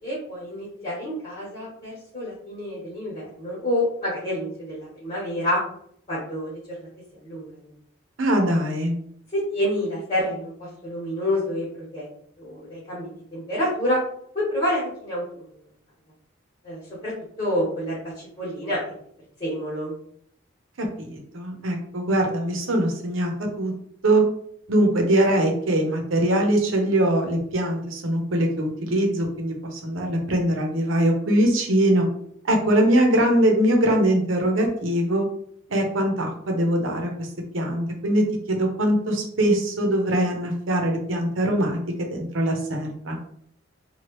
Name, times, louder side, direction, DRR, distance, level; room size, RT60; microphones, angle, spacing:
voice 1, 0.0-5.6 6.1-6.5 6.8-6.9 7.2-7.7 9.3-11.7 11.9-12.1 12.4-14.0 14.3-15.4 16.6-17.1 17.4-18.8 19.4-19.9, left 1 dB, 30° left, -8 dB, 1.2 m, -28 dB
voice 2, 8.2-8.9 20.8-23.3 23.6-23.7 24.0-24.2 24.7-32.1 32.4-35.3 35.7-43.2, right 1 dB, 75° right, 2 dB, 0.7 m, -22 dB
3.0 x 2.3 x 3.1 m, 0.67 s
head